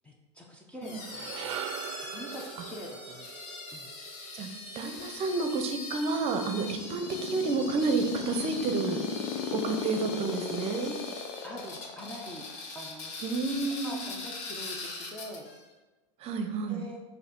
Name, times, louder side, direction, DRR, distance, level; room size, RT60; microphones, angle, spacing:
voice 1, 0.0-1.6 2.1-3.3 3.7-3.9 7.1-7.3 10.1-10.4 11.4-12.5 12.7-13.1 13.8-15.5 16.7-17.0, equal, 10° left, -1 dB, 0.8 m, -44 dB
sound 1, 0.8-15.6, left 3 dB, 50° left, 1.2 m, -42 dB
sound 2, 0.8-5.2, right 10 dB, 80° right, 0.5 m, -42 dB
voice 2, 4.7-9.0 9.5-11.0 13.2-14.0 16.2-16.8, right 3 dB, 40° right, 6 dB, 0.7 m, -30 dB
sound 3, 6.2-12.8, left 7 dB, 65° left, 0.7 m, -35 dB
6.6 x 2.8 x 5.3 m, 1.2 s
supercardioid pair, 120°, 15 cm